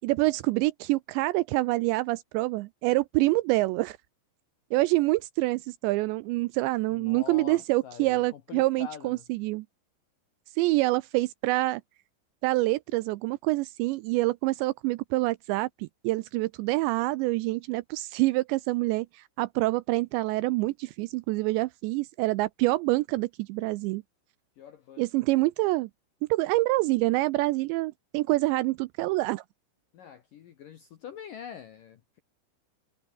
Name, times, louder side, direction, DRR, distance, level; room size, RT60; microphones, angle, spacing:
voice 1, 0.0-4.0 4.7-9.7 10.6-11.8 12.4-24.0 25.0-25.9 26.3-29.4, right 20 dB, 85° right, 2.6 m, -26 dB
voice 2, 6.9-9.2 24.6-25.1 29.9-32.2, left 8 dB, 65° left, 2.2 m, -44 dB
omnidirectional pair, 5.6 m